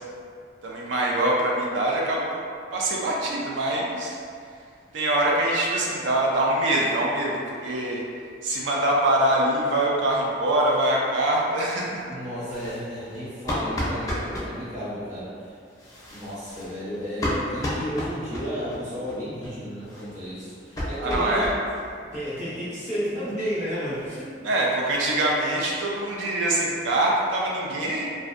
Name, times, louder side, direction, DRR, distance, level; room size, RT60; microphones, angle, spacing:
voice 1, 0.6-2.4 2.7-4.2 4.9-8.0 8.4-12.0 21.0-21.5 24.4-28.0, right 1 dB, 75° right, -3 dB, 0.3 m, -24 dB
voice 2, 12.1-15.6 16.1-21.5 21.9-24.4, equal, 40° right, -11 dB, 0.9 m, -32 dB
sound 1, 12.5-14.5 15.7-18.8 19.1-19.2 19.4-19.5 19.8-21.9 22.1-22.2 22.5-22.6 23.0-23.1 23.3-24.2, left 1 dB, 20° left, 0.4 m, -33 dB
2.5 x 2.1 x 2.4 m, 2.3 s
head